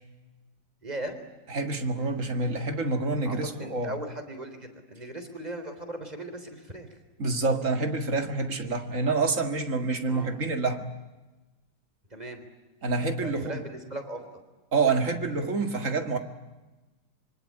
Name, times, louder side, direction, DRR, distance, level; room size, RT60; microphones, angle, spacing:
voice 1, 0.8-1.2 3.2-7.0 10.1-10.3 12.1-12.4 13.2-14.3, right 1 dB, 20° right, 7 dB, 3.7 m, -38 dB
voice 2, 1.5-3.9 7.2-10.9 12.8-13.6 14.7-16.2, right 3 dB, 45° right, 7 dB, 2.3 m, -27 dB
25.5 x 24.0 x 8.8 m, 1.1 s
omnidirectional pair, 1.9 m